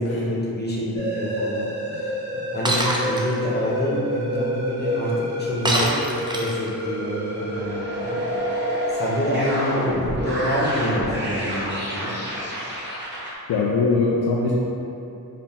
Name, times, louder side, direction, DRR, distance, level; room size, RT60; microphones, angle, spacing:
voice 1, 0.0-6.0 6.3-8.2 8.9-12.2, equal, 30° left, -5 dB, 0.9 m, -27 dB
sound 1, 0.9-13.3, equal, 30° right, 1.1 m, -28 dB
Shatter, 2.6-3.2 5.6-6.7, right 1 dB, 10° right, 0.5 m, -23 dB
voice 2, 13.5-14.6, left 3 dB, 80° left, -4 dB, 0.5 m, -22 dB
4.7 x 2.1 x 3.5 m, 2.8 s
cardioid pair, 60°, 37 cm